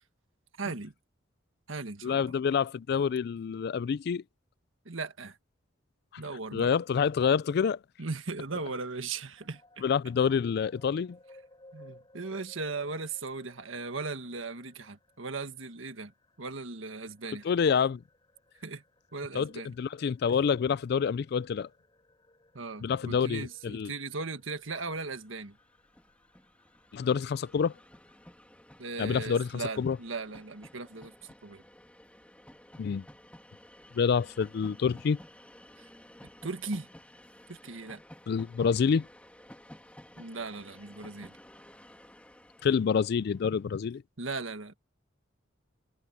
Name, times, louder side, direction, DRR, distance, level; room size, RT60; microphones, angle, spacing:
voice 1, 0.6-0.9 1.7-2.3 4.8-5.4 6.2-6.7 8.0-9.8 11.7-16.1 16.4-17.5 18.6-18.8 19.1-19.7 22.5-25.6 28.8-31.1 31.4-31.6 36.4-36.9 37.5-38.0 40.2-41.3 44.2-44.7, right 3 dB, 80° right, 1.6 m, -38 dB
voice 2, 2.0-4.2 6.5-7.8 9.8-11.2 17.4-18.0 19.3-21.7 22.8-23.9 26.9-27.7 29.0-30.0 32.8-33.0 33.9-35.2 38.3-39.0 42.6-44.0, left 6 dB, 55° left, 0.3 m, -27 dB
sound 1, 9.4-28.3, left 2 dB, 25° left, 7.5 m, -62 dB
Train, 24.9-25.0 25.2-43.6, left 1 dB, 5° left, 2.7 m, -54 dB
head